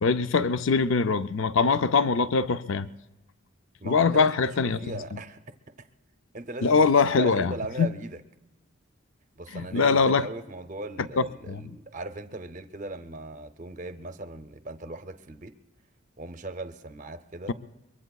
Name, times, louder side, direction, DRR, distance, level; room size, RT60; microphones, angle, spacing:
voice 1, 0.0-2.9 3.8-4.8 5.1-5.2 6.6-7.9 9.5-10.3 11.2-11.7 17.5-17.6, left 4 dB, 70° left, 13 dB, 0.5 m, -23 dB
voice 2, 3.8-4.4 4.6-5.4 6.3-6.9 7.1-8.2 9.4-15.5 16.2-17.5, right 2 dB, 35° right, 9 dB, 0.6 m, -38 dB
23.5 x 22.0 x 2.3 m, 0.98 s
head